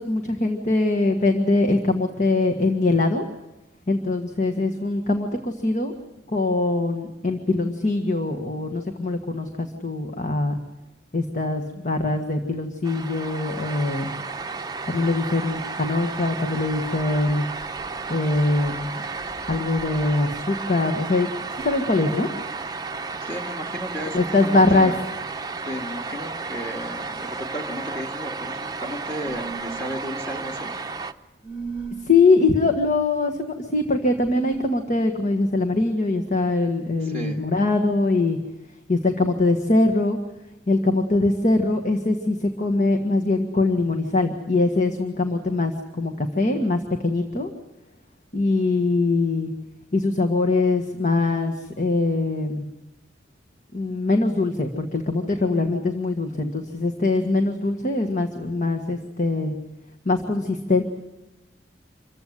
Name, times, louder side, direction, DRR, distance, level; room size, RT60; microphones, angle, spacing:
voice 1, 0.0-3.3 3.9-5.9 6.3-10.6 11.1-14.1 14.9-17.5 18.1-19.0 19.5-22.3 24.1-24.9 32.0-38.4 38.9-40.2 40.7-47.5 48.3-49.5 49.9-52.7 53.7-59.5 60.0-60.8, left 2 dB, 45° left, 5 dB, 1.6 m, -22 dB
sound 1, 12.8-31.1, right 4 dB, 20° right, 0.8 m, -33 dB
voice 2, 23.1-25.0 25.7-30.7 37.0-37.4, equal, 10° left, 2 dB, 1.8 m, -34 dB
sound 2, 29.2-29.9 31.4-32.1 34.2-34.8, right 5 dB, 5° right, 1.4 m, -35 dB
26.5 x 15.5 x 9.4 m, 0.99 s
head